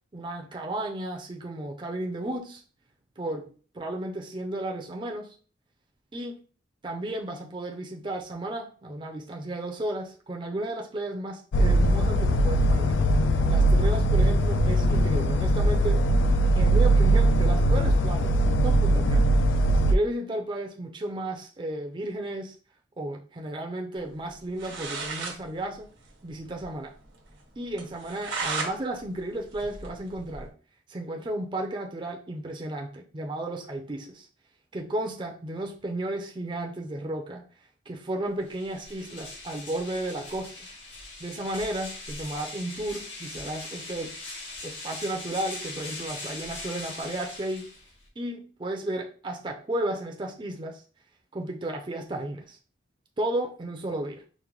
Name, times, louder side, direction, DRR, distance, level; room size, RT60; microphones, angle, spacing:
voice 1, 0.1-2.6 3.2-5.3 6.1-6.4 6.8-13.0 13.5-16.0 16.6-18.4 18.6-19.3 19.8-22.5 23.0-25.9 26.2-26.9 27.6-30.5 30.9-34.3 34.7-37.4 37.9-40.5 41.2-44.2 44.6-47.7 48.2-50.8 51.3-52.6 53.2-54.2, right 1 dB, 25° right, 1 dB, 0.4 m, -33 dB
sound 1, 11.5-20.0, right 1 dB, 80° left, 0.4 m, -21 dB
sound 2, 24.3-24.4 24.6-25.4 25.7-25.8 26.1-26.2 26.6-26.7 27.1-27.2 27.8-28.7 29.1-30.5, right 4 dB, 90° right, 1.1 m, -34 dB
sound 3, 38.4-48.1, left 2 dB, 65° left, 1.6 m, -41 dB
5.0 x 2.1 x 3.1 m, 0.40 s
head